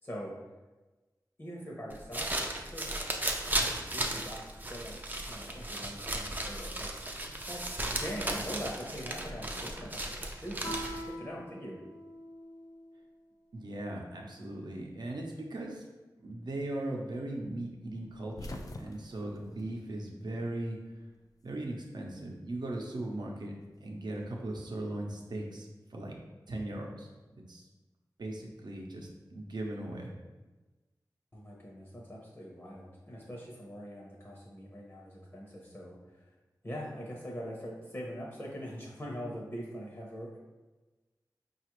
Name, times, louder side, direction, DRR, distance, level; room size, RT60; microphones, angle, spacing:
voice 1, 0.0-0.3 1.4-2.9 3.6-4.4 4.7-5.0 5.3-6.9 7.5-7.6 7.9-11.8 31.3-36.3 36.6-40.4, equal, 35° left, -3 dB, 0.7 m, -42 dB
sound 1, 1.9-11.1, right 1 dB, 25° right, 0.4 m, -35 dB
Guitar, 10.6-13.1, equal, 85° left, 0.9 m, -43 dB
voice 2, 13.5-15.8 16.2-20.8 21.4-26.2 26.5-27.1 27.3-27.7 28.2-30.2, right 1 dB, 70° right, 0 dB, 0.6 m, -38 dB
sound 2, 18.0-20.6 20.9-21.9 23.1-24.6, left 2 dB, 55° left, 0.3 m, -47 dB
4.8 x 2.4 x 3.0 m, 1.2 s
wide cardioid pair, 75°, 7 cm